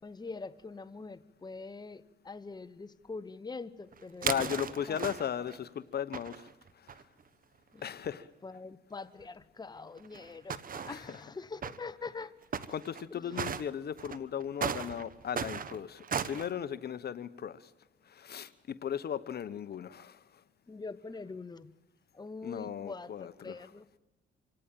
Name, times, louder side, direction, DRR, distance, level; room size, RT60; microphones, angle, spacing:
voice 1, 0.0-4.5 4.9-5.0 7.7-12.3 13.1-13.4 20.7-21.7 22.1-24.0, left 4 dB, 20° left, 13 dB, 1.1 m, -44 dB
sound 1, 3.9-5.6 6.1-7.0 7.8-7.9 8.0-8.1 9.2-9.3 10.0-11.2 11.6-11.8 12.5-13.0 13.3-13.6 14.0-16.5, right 7 dB, 45° right, 1.2 m, -36 dB
voice 2, 4.2-6.5 6.8-6.9 7.8-8.3 10.9-11.1 12.7-17.7 18.1-20.2 22.4-23.6, left 9 dB, 55° left, 15 dB, 1.0 m, -37 dB
26.0 x 17.5 x 9.1 m, 1.0 s
cardioid pair, 90°, 20 cm